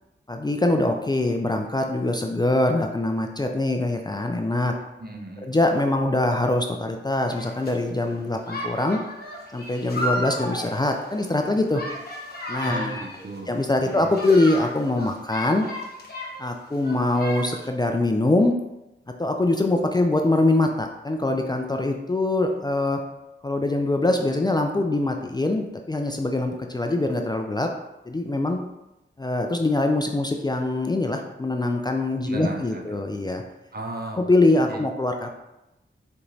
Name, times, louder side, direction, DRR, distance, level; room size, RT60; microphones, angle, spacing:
voice 1, 0.3-4.7 5.4-9.0 9.5-11.8 12.5-13.0 13.5-15.7 16.4-18.5 19.2-23.0 23.4-27.7 28.1-28.6 29.2-33.4 34.2-35.3, left 2 dB, 20° left, 3 dB, 0.3 m, -23 dB
voice 2, 5.0-5.5 12.6-13.5 13.8-14.1 32.3-33.0 33.7-34.2 34.7-34.8, right 1 dB, 50° right, 1 dB, 0.6 m, -35 dB
sound 1, 7.3-7.7 8.4-13.4 13.8-16.4 16.7-17.7, equal, 50° left, 0.9 m, -34 dB
4.3 x 2.9 x 2.7 m, 0.94 s
cardioid pair, 50°, 21 cm